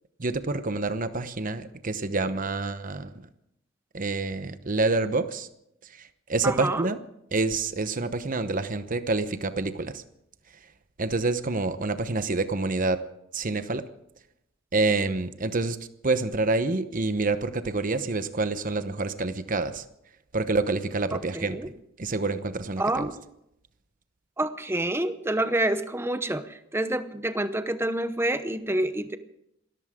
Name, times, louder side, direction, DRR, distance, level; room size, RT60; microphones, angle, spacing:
voice 1, 0.2-3.3 3.9-5.5 6.0-7.0 7.3-10.0 11.0-13.0 13.3-13.8 14.7-15.8 16.0-19.8 20.3-21.6 22.0-23.1, right 3 dB, 40° right, 11 dB, 0.9 m, -27 dB
voice 2, 6.4-6.9 21.1-21.7 22.8-23.2 24.4-26.5 26.7-29.2, right 1 dB, 10° right, 11 dB, 0.8 m, -27 dB
27.0 x 14.0 x 3.7 m, 0.79 s
head